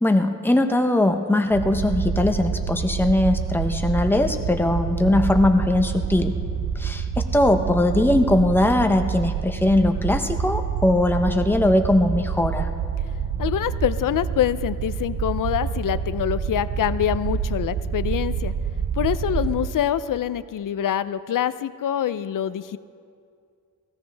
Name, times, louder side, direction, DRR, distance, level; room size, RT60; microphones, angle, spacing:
voice 1, 0.0-6.3 6.8-12.7, left 1 dB, 5° left, 5 dB, 0.8 m, -20 dB
sound 1, 1.5-19.7, right 6 dB, 80° right, 0.9 m, -27 dB
voice 2, 13.4-18.5 19.0-22.8, left 10 dB, 75° left, 15 dB, 0.5 m, -25 dB
19.0 x 17.0 x 3.4 m, 2.3 s
wide cardioid pair, 150°, 33 cm